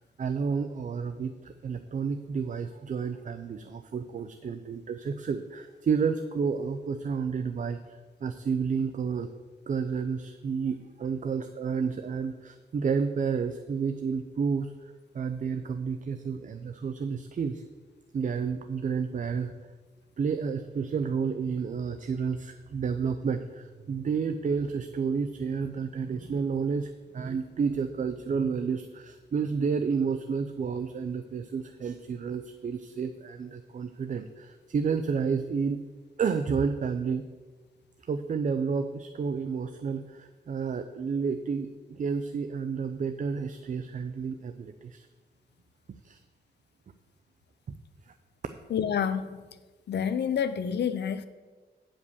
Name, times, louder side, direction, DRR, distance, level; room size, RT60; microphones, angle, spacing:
voice 1, 0.0-9.3 9.7-17.6 18.1-19.5 20.2-35.8 36.2-37.2 38.1-45.1 46.0-46.2 48.1-48.2, right 5 dB, 45° right, 8 dB, 0.5 m, -31 dB
voice 2, 48.7-49.5 49.9-51.3, left 8 dB, 70° left, 12 dB, 0.6 m, -28 dB
9.5 x 5.2 x 6.9 m, 1.3 s
wide cardioid pair, 120°, 18 cm